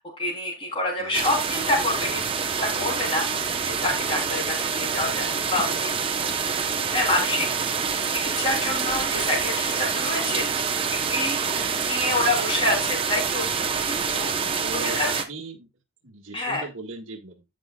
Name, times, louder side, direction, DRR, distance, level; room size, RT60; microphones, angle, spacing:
voice 1, 0.0-5.9 6.9-7.5 8.1-10.5 10.9-13.5 13.9-14.3 14.8-15.3 16.3-16.6, left 2 dB, 25° left, 3.4 m, -27 dB
sound 1, 1.1-15.2, right 6 dB, 25° right, 0.9 m, -26 dB
voice 2, 14.6-15.7 16.0-17.4, right 3 dB, 65° right, 1.7 m, -38 dB
14.5 x 5.6 x 2.3 m
head